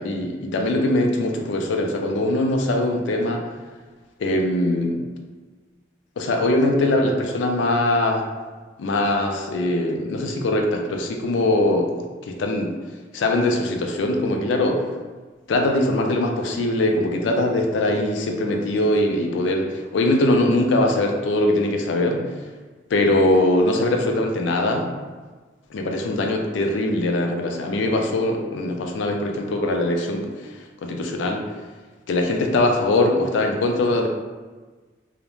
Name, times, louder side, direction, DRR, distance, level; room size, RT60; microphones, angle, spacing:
voice 1, 0.0-3.4 4.2-5.1 6.2-8.2 8.8-12.0 12.3-12.7 13.1-14.8 15.5-22.3 22.9-24.9 25.7-30.5 30.8-31.4 32.1-34.1, left 1 dB, 80° left, 3 dB, 0.4 m, -21 dB
2.4 x 2.1 x 3.0 m, 1.3 s
head